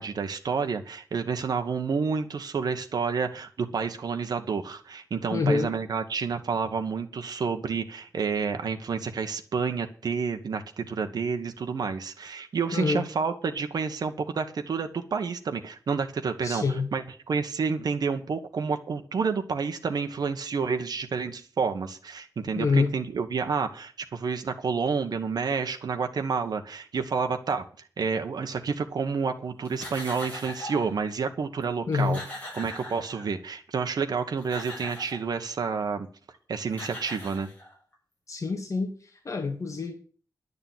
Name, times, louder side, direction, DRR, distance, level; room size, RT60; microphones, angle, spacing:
voice 1, 0.0-32.2 32.5-36.1 36.5-37.5, right 5 dB, 85° right, 6 dB, 1.3 m, -29 dB
voice 2, 5.3-5.7 12.7-13.0 16.4-16.9 22.6-22.9 31.9-32.2 38.3-39.9, left 4 dB, 50° left, 3 dB, 1.9 m, -26 dB
sound 1, 29.6-31.0 31.6-31.7 31.9-33.5 34.2-35.3 36.3-36.4 36.7-37.9, left 1 dB, 20° left, 7.0 m, -40 dB
11.0 x 6.7 x 9.2 m, 0.41 s
wide cardioid pair, 150°, 7 cm